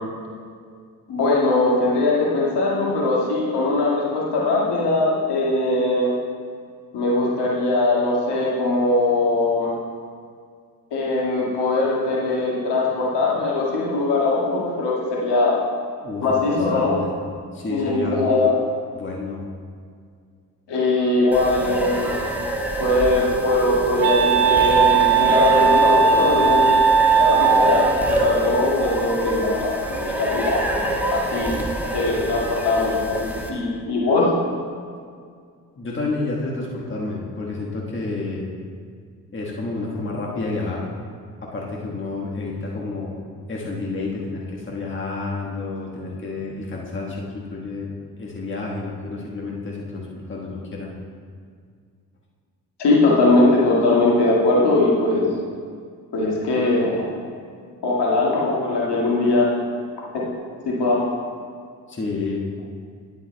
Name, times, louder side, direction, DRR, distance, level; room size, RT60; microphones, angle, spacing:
voice 1, 1.1-6.1 6.9-9.7 10.9-15.5 16.2-17.0 17.7-18.5 20.7-22.1 22.8-26.7 27.1-30.6 31.1-31.6 31.9-34.3 52.8-55.3 56.1-57.1 57.8-59.5 60.1-60.2 60.7-61.1, left 2 dB, 55° left, -4 dB, 1.9 m, -20 dB
voice 2, 16.0-17.1 17.5-18.2 18.9-19.4 35.8-38.4 39.3-40.9 41.4-43.2 43.5-47.9 48.2-50.9 61.9-62.5, left 3 dB, 25° left, -3 dB, 1.4 m, -30 dB
sound 1, 21.3-33.5, right 1 dB, 5° right, 1.4 m, -26 dB
Wind instrument woodwind instrument, 22.6-28.1, right 6 dB, 70° right, 0.7 m, -18 dB
10.5 x 9.2 x 2.2 m, 2.1 s
figure-of-eight pair, 40°, 48 cm